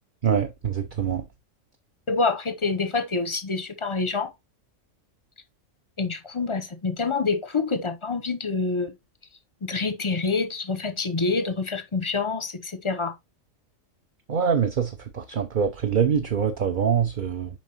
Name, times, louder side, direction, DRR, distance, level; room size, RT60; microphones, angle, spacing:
voice 1, 0.2-1.2 14.3-17.5, right 7 dB, 45° right, 0.8 m, -24 dB
voice 2, 2.1-4.3 6.0-9.0 9.6-13.1, left 4 dB, 30° left, 0.7 m, -27 dB
7.3 x 5.1 x 2.9 m
omnidirectional pair, 1.4 m